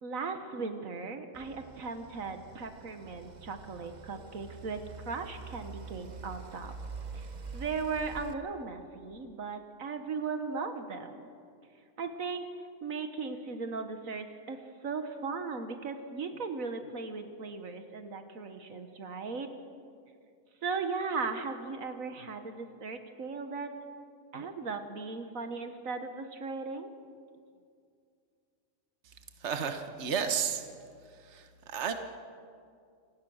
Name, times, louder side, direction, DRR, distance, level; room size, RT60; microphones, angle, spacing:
voice 1, 0.0-6.7 7.1-7.3 7.5-11.2 12.0-12.5 12.8-19.5 20.6-23.7 24.3-26.9, right 4 dB, 75° right, 7 dB, 1.7 m, -37 dB
sound 1, 1.3-8.3, right 4 dB, 35° right, 1.0 m, -45 dB
voice 2, 29.4-30.6 31.1-31.9, right 7 dB, 55° right, 7 dB, 1.5 m, -33 dB
27.5 x 18.0 x 6.4 m, 2.3 s
omnidirectional pair, 1.4 m